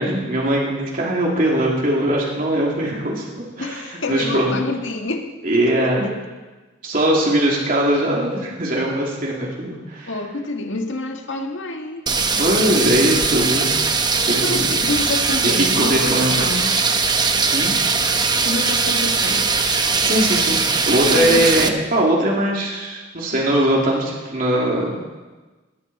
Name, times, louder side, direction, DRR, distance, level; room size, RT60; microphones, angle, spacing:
voice 1, 0.0-3.2 3.6-4.6 5.4-6.1 6.8-10.1 12.3-13.7 14.3-14.8 15.4-16.4 17.5-17.7 20.0-20.6 20.9-25.0, right 1 dB, 45° right, -2 dB, 2.9 m, -20 dB
voice 2, 3.6-5.3 5.7-6.1 10.1-12.1 14.4-16.7 18.4-19.5 21.1-21.6, left 2 dB, 80° left, 3 dB, 1.9 m, -27 dB
sound 1, 12.1-21.7, right 4 dB, 20° right, 0.9 m, -20 dB
20.5 x 13.0 x 4.3 m, 1.2 s
head